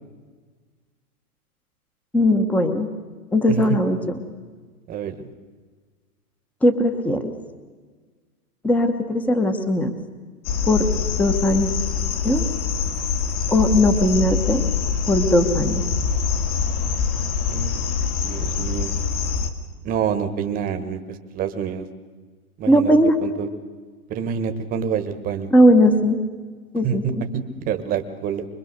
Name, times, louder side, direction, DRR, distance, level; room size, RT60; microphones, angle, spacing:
voice 1, 2.1-2.9 3.3-4.2 6.6-7.3 8.6-9.9 10.7-10.9 11.2-11.7 12.2-12.5 13.5-14.6 15.0-15.8 22.7-23.2 25.5-26.2 26.7-27.2, left 1 dB, 5° left, 8 dB, 0.9 m, -18 dB
voice 2, 3.5-3.8 4.9-5.1 17.5-17.8 18.2-18.9 19.8-21.9 22.6-22.9 23.2-23.5 24.1-25.5 26.8-28.5, right 7 dB, 20° right, 8 dB, 1.1 m, -27 dB
sound 1, 10.4-19.5, left 6 dB, 60° left, 2.3 m, -24 dB
25.0 x 21.0 x 6.6 m, 1.5 s
hypercardioid pair, 150°, 46 cm